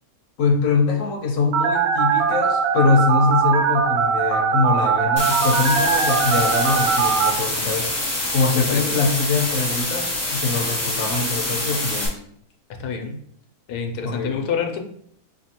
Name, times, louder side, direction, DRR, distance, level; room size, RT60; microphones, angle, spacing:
voice 1, 0.4-7.9 8.3-12.2 14.0-14.3, left 4 dB, 60° left, 1 dB, 1.0 m, -23 dB
Telephone, 1.5-7.3, right 6 dB, 80° right, 1.1 m, -20 dB
sound 1, 5.2-12.1, left 1 dB, 15° left, 0.7 m, -26 dB
voice 2, 8.5-9.0 12.8-13.2 13.7-14.8, left 6 dB, 90° left, 4 dB, 1.1 m, -27 dB
4.4 x 2.7 x 2.8 m, 0.67 s
omnidirectional pair, 1.6 m